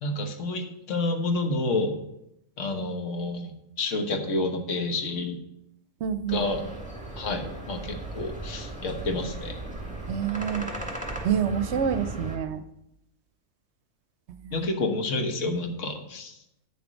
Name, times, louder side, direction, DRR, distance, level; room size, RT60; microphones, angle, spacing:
voice 1, 0.0-2.0 2.6-3.5 3.8-5.4 6.3-6.6 7.2-9.6 14.5-16.4, left 2 dB, 70° left, 5 dB, 1.5 m, -29 dB
voice 2, 6.0-6.7 10.1-10.7 11.2-12.6 14.3-14.7, right 8 dB, 65° right, 11 dB, 0.8 m, -28 dB
sound 1, 6.3-12.4, right 2 dB, 5° right, 1.7 m, -37 dB
9.2 x 6.9 x 5.1 m, 0.83 s
omnidirectional pair, 1.4 m